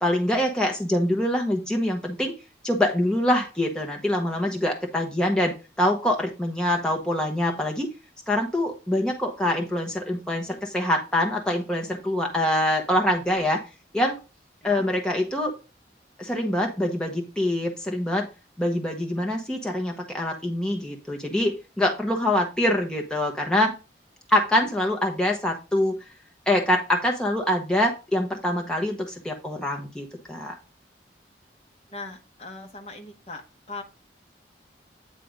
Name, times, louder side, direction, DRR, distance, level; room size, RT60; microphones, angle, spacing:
voice 1, 0.0-2.3 2.6-7.9 8.3-13.6 13.9-14.1 14.6-15.5 16.2-18.3 18.6-23.7 24.3-26.0 26.5-30.6, left 1 dB, 5° left, 1.0 m, -25 dB
voice 2, 31.9-33.4 33.7-33.8, left 3 dB, 35° left, 1.2 m, -39 dB
9.2 x 3.4 x 5.0 m
head